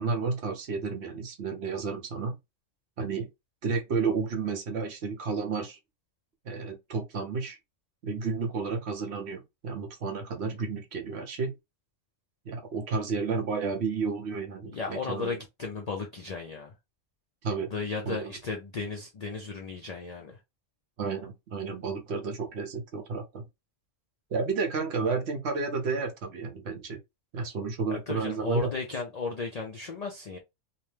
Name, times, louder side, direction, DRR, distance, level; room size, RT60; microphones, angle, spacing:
voice 1, 0.0-2.4 3.0-3.3 3.6-5.8 6.4-7.6 8.0-11.5 12.4-15.4 17.4-17.7 18.0-18.3 21.0-23.4 24.3-27.0 27.3-28.7, right 4 dB, 60° right, 0.9 m, -31 dB
voice 2, 14.7-16.7 17.7-20.4 27.9-30.4, left 4 dB, 65° left, 0.4 m, -35 dB
2.9 x 2.1 x 3.2 m
omnidirectional pair, 1.4 m